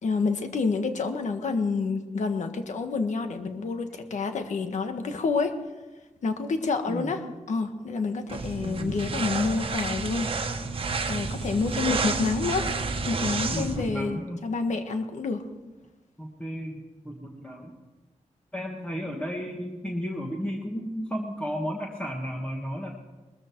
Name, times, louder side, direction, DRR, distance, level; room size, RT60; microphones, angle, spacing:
voice 1, 0.0-5.6 6.2-7.2 7.5-10.3 11.1-12.7 13.1-15.4, left 4 dB, 85° left, 7 dB, 1.5 m, -28 dB
sound 1, 8.3-13.9, right 4 dB, 50° right, 1.2 m, -30 dB
voice 2, 8.6-9.1 13.5-14.4 16.2-17.7 18.5-22.9, equal, 10° left, -1 dB, 1.6 m, -33 dB
20.5 x 14.0 x 4.6 m, 1.2 s
wide cardioid pair, 175°, 12 cm